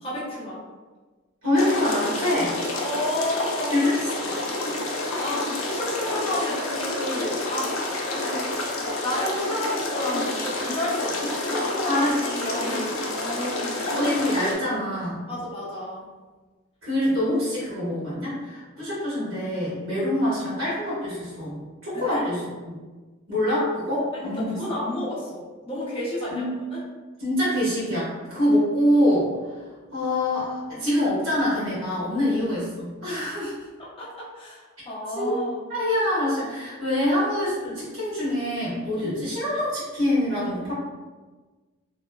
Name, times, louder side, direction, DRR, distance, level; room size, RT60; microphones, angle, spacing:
voice 1, 0.0-0.6 2.8-3.7 4.8-8.7 9.0-12.1 12.4-14.0 15.3-16.1 21.9-22.2 23.9-26.8 32.2-32.4 33.8-35.6 38.9-39.0, left 1 dB, 25° left, -8 dB, 0.8 m, -31 dB
voice 2, 1.4-2.6 3.7-4.3 11.8-13.0 13.9-15.2 16.8-22.7 23.3-24.6 26.3-26.5 27.2-29.3 29.9-33.5 35.1-35.4 35.7-40.7, left 1 dB, 70° right, -10 dB, 1.3 m, -25 dB
sound 1, 1.6-14.5, left 2 dB, 75° left, 0.5 m, -29 dB
2.9 x 2.2 x 2.2 m, 1.3 s
head